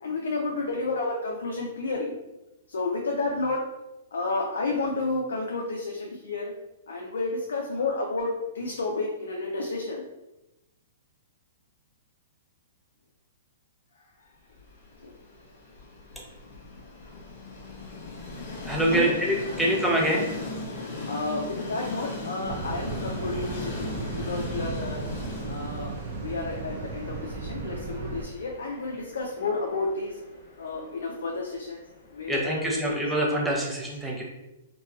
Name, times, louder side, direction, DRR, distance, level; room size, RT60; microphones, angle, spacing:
voice 1, 0.0-2.2 2.7-3.7 4.1-6.5 6.9-10.0 14.0-14.1 15.0-15.1 18.9-19.6 21.0-25.0 25.5-30.2 30.6-31.8 32.1-33.0, left 3 dB, 90° left, 0 dB, 0.4 m, -31 dB
Train, 14.6-32.6, left 3 dB, 45° left, 0.7 m, -39 dB
voice 2, 18.6-20.3 32.3-34.2, right 1 dB, 5° right, -3 dB, 0.5 m, -25 dB
sound 1, 22.4-28.3, right 4 dB, 60° right, 0.4 m, -35 dB
2.8 x 2.2 x 2.3 m, 0.97 s
hypercardioid pair, 145°, 0 cm